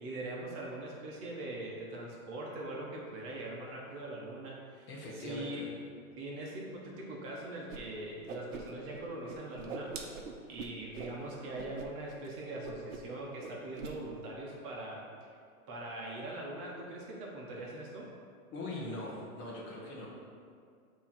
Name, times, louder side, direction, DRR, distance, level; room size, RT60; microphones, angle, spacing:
voice 1, 0.0-5.6 6.2-10.1 10.5-15.3 15.7-18.1, right 2 dB, 30° right, -3 dB, 1.1 m, -42 dB
voice 2, 4.9-5.7 18.5-20.1, left 1 dB, 25° left, -4 dB, 1.0 m, -41 dB
Whoosh swoosh swish, 7.7-7.8 8.1-9.0 9.3-11.1 11.5-11.9 12.1-12.3 12.6-13.1 13.4-13.9, right 5 dB, 60° right, 0.9 m, -43 dB
8.2 x 3.1 x 4.3 m, 2.2 s
hypercardioid pair, 125°, 44 cm